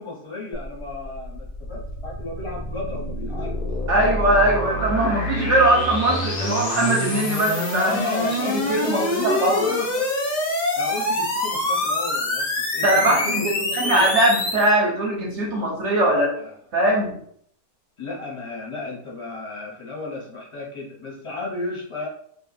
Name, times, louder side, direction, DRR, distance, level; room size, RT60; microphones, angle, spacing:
voice 1, 0.0-3.5 7.8-10.1 10.7-14.1 16.0-16.5 18.0-22.1, left 3 dB, 25° left, -4 dB, 0.9 m, -33 dB
sound 1, 0.5-14.7, left 1 dB, 70° left, 0.4 m, -26 dB
voice 2, 3.9-8.1 8.4-9.7 12.8-16.3 16.7-17.2, right 1 dB, 55° right, -1 dB, 0.9 m, -21 dB
2.6 x 2.4 x 4.0 m, 0.65 s
omnidirectional pair, 1.7 m